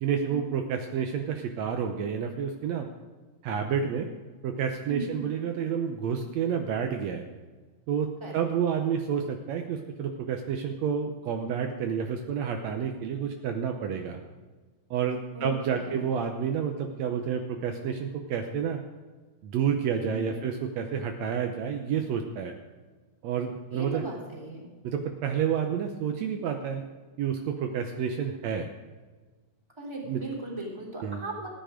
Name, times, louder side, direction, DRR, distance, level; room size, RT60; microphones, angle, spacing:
voice 1, 0.0-2.9 3.4-4.1 4.4-7.3 7.9-14.2 14.9-18.8 19.4-22.5 23.2-24.0 24.8-26.8 27.2-28.7 30.0-30.2 31.0-31.2, right 7 dB, 85° right, 5 dB, 1.5 m, -29 dB
voice 2, 4.9-5.3 8.2-8.4 15.3-16.0 20.1-20.5 23.7-24.7 29.8-31.5, right 2 dB, 10° right, -3 dB, 3.0 m, -38 dB
15.5 x 10.5 x 5.0 m, 1.3 s
omnidirectional pair, 4.2 m